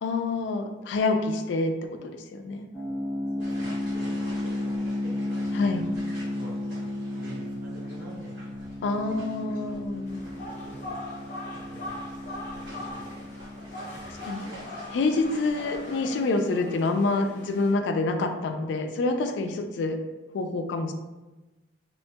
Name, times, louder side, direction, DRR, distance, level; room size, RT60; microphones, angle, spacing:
voice 1, 0.0-2.7 5.5-5.9 8.8-10.2 14.0-14.5 14.9-20.0 20.3-20.9, left 3 dB, 75° left, 6 dB, 0.3 m, -27 dB
sound 1, 2.7-17.5, left 1 dB, ahead, 0.4 m, -34 dB
voice 2, 3.4-4.7 5.0-5.1 5.6-6.0 6.3-6.8 7.1-8.5 9.0-9.3 9.7-9.9 10.5-11.0 11.6-13.2 13.7-14.3, right 1 dB, 50° right, -5 dB, 0.7 m, -48 dB
sound 2, 3.4-16.0, equal, 80° right, 1.2 m, -47 dB
sound 3, 10.1-17.7, left 2 dB, 40° left, 0.7 m, -41 dB
3.0 x 2.2 x 2.7 m, 1.1 s
head